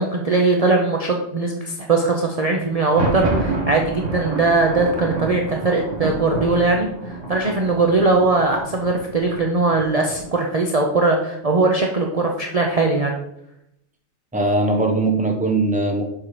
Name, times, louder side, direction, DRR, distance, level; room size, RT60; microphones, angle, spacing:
voice 1, 0.0-13.2, right 3 dB, 35° right, 1 dB, 0.8 m, -20 dB
Thunder, 2.7-10.5, right 2 dB, 80° right, 2.3 m, -28 dB
voice 2, 14.3-16.0, right 2 dB, 5° right, 3 dB, 1.0 m, -20 dB
7.2 x 5.7 x 4.9 m, 0.80 s
omnidirectional pair, 1.3 m